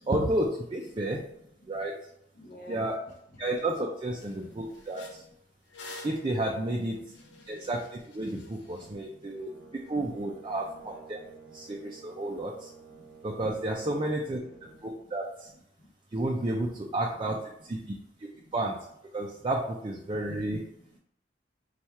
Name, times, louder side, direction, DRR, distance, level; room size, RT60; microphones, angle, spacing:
voice 1, 0.1-1.2 1.7-1.9 2.7-3.0 3.4-5.2 6.0-7.1 7.5-9.5 9.9-11.2 11.5-12.7 13.2-14.4 14.8-15.5 16.1-18.8 19.1-20.6, right 1 dB, 30° right, -1 dB, 0.4 m, -31 dB
voice 2, 2.3-2.9 4.3-4.6 4.9-5.3 7.0-7.1 7.4-7.6 8.4-9.7 12.3-12.4 12.9-13.2 13.8-14.1 14.4-15.0 15.8-15.9 17.8-18.0 18.3-18.5 20.7-21.0, left 1 dB, 55° left, -3 dB, 0.7 m, -53 dB
sound 1, 3.1-3.2 3.6-3.8 4.1-8.9, left 2 dB, 85° left, 0.8 m, -49 dB
Brass instrument, 9.3-14.8, right 5 dB, 60° right, 0.7 m, -52 dB
4.2 x 2.4 x 4.4 m, 0.74 s
head